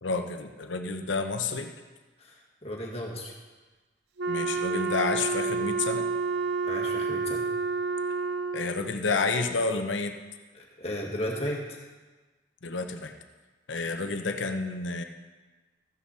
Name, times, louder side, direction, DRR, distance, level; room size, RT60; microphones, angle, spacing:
voice 1, 0.0-1.7 4.3-6.1 8.5-10.1 12.6-13.1 13.7-15.0, left 4 dB, 85° left, 6 dB, 0.9 m, -30 dB
voice 2, 2.2-3.3 6.6-7.5 10.5-11.6, equal, 35° left, -1 dB, 1.9 m, -35 dB
Wind instrument woodwind instrument, 4.2-8.9, right 4 dB, 60° right, 0.4 m, -29 dB
14.0 x 9.7 x 4.2 m, 1.3 s
head